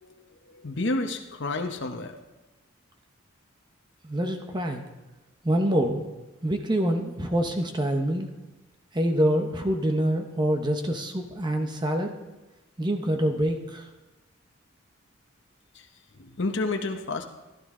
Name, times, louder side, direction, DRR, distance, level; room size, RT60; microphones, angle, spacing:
voice 1, 0.6-2.1 16.2-17.2, left 2 dB, 60° left, 5 dB, 1.0 m, -29 dB
voice 2, 4.0-4.8 5.4-6.1 6.4-8.3 8.9-12.1 12.8-13.9, right 1 dB, 20° right, 4 dB, 0.8 m, -26 dB
15.5 x 12.0 x 3.7 m, 1.1 s
head